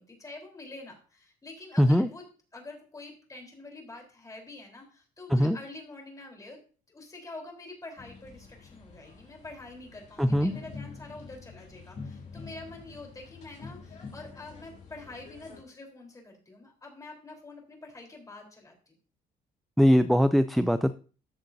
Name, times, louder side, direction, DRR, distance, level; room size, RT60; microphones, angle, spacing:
voice 1, 0.0-2.2 2.5-6.6 6.9-19.0, left 2 dB, 20° left, 1 dB, 3.7 m, -46 dB
voice 2, 1.8-2.1 5.3-5.6 10.2-10.5 19.8-20.9, equal, ahead, 12 dB, 0.3 m, -21 dB
sound 1, 8.0-15.6, left 4 dB, 40° left, 2.5 m, -46 dB
13.5 x 7.9 x 2.6 m, 0.37 s
cardioid pair, 110°, 17 cm